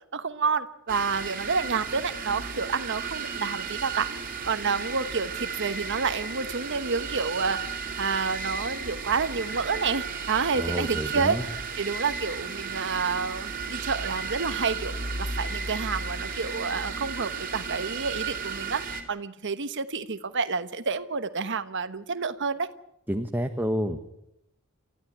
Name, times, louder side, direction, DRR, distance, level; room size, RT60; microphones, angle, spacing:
voice 1, 0.1-22.7, right 5 dB, 60° right, 11 dB, 1.1 m, -29 dB
sound 1, 0.9-19.0, right 5 dB, 40° right, 3.4 m, -34 dB
voice 2, 10.6-11.4 23.1-24.0, equal, 10° right, 6 dB, 1.1 m, -29 dB
29.0 x 13.5 x 10.0 m, 0.84 s
head